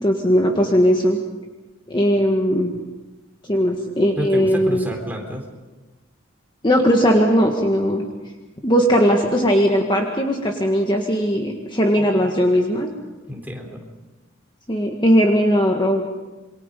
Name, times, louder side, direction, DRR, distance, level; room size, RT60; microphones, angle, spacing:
voice 1, 0.0-1.2 1.9-2.7 3.5-4.8 6.6-8.0 8.6-12.9 14.7-16.1, equal, 20° left, 1 dB, 1.7 m, -18 dB
voice 2, 4.2-5.4 12.0-12.3 13.3-13.8, equal, 10° right, 1 dB, 3.6 m, -30 dB
27.5 x 23.5 x 5.3 m, 1.1 s
head